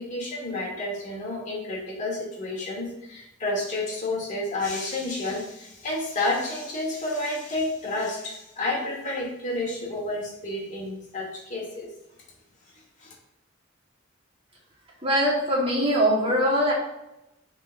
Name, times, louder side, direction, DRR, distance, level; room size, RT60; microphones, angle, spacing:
voice 1, 0.0-11.9 13.0-13.1, left 2 dB, 40° left, -1 dB, 1.5 m, -30 dB
voice 2, 15.0-16.7, equal, 25° right, -3 dB, 1.4 m, -22 dB
10.5 x 3.7 x 2.6 m, 0.89 s
head